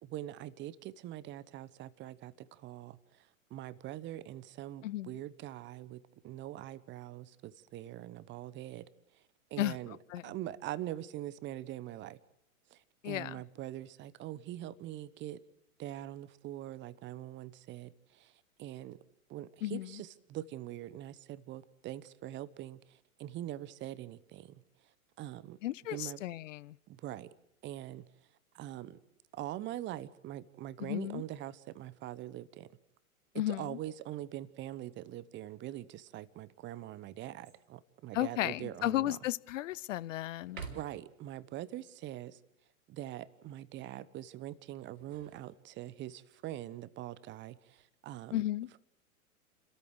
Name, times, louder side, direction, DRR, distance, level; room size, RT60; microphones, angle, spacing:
voice 1, 0.0-8.9 9.5-10.0 10.2-12.2 12.7-15.4 15.8-18.3 18.6-19.0 19.3-24.6 25.2-25.6 25.9-26.2 26.9-27.3 27.6-28.0 28.5-29.0 29.3-32.7 33.5-39.2 40.6-42.4 42.9-48.4, right 13 dB, 25° right, 1.0 m, -43 dB
voice 2, 4.8-5.2 9.6-10.3 13.0-13.4 19.6-20.0 25.6-26.8 30.8-31.2 33.3-33.8 38.1-40.6 48.3-48.7, left 14 dB, 60° left, 0.7 m, -34 dB
sound 1, 37.4-37.9 38.5-38.6 39.1-39.9 40.4-41.2 44.7-46.1 47.4-48.0, right 5 dB, 70° right, 3.8 m, -50 dB
29.5 x 13.5 x 6.6 m
figure-of-eight pair, 105°, 43 cm